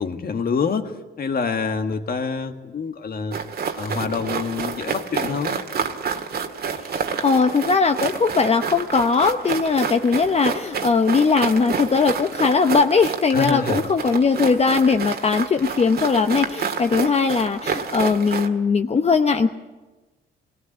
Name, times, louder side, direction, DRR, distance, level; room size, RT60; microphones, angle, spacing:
voice 1, 0.0-3.4 3.7-5.6 13.3-13.8, left 5 dB, 50° left, 7 dB, 1.7 m, -26 dB
sound 1, 3.3-18.5, right 6 dB, 50° right, 1.7 m, -29 dB
voice 2, 6.8-19.5, left 4 dB, 30° left, 6 dB, 0.8 m, -19 dB
18.5 x 18.0 x 8.5 m, 1.2 s
cardioid pair, 90°, 20 cm